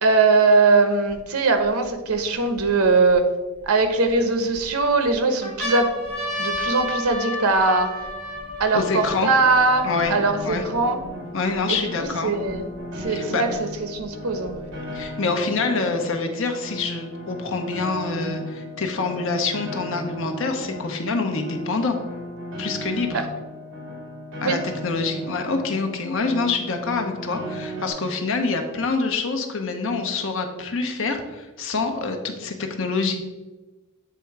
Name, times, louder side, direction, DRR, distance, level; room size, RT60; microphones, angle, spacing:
voice 1, 0.0-3.3 3.7-5.9 6.4-7.9 8.6-11.0 11.7-12.7 13.0-14.7 23.1-23.2 24.4-24.6, right 3 dB, 85° right, 7 dB, 0.9 m, -21 dB
sound 1, 1.1-1.2 1.9-3.1 3.8-4.6 5.1-5.2 5.4-11.0 11.8-11.9 12.0-13.0 14.0-15.0, equal, ahead, 2.2 m, -32 dB
voice 2, 8.7-9.3 9.8-10.1 10.4-10.6 11.3-12.3 13.1-13.4 14.9-22.0 22.6-23.2 24.4-33.2, left 4 dB, 65° left, 5 dB, 0.9 m, -26 dB
Piano, 8.7-27.9, equal, 60° right, 2.0 m, -36 dB
8.3 x 3.5 x 4.7 m, 1.2 s
head